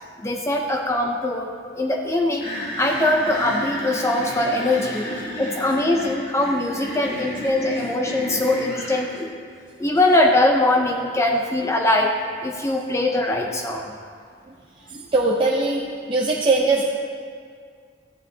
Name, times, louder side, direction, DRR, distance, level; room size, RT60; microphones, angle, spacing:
voice 1, 0.2-2.5 2.8-5.1 5.4-9.3 9.8-14.0, left 1 dB, 15° left, 2 dB, 0.5 m, -22 dB
sound 1, 2.4-9.0, left 1 dB, 50° left, 2.7 m, -32 dB
voice 2, 14.9-16.9, right 3 dB, 30° right, -3 dB, 0.7 m, -21 dB
14.0 x 10.0 x 2.7 m, 2.1 s
head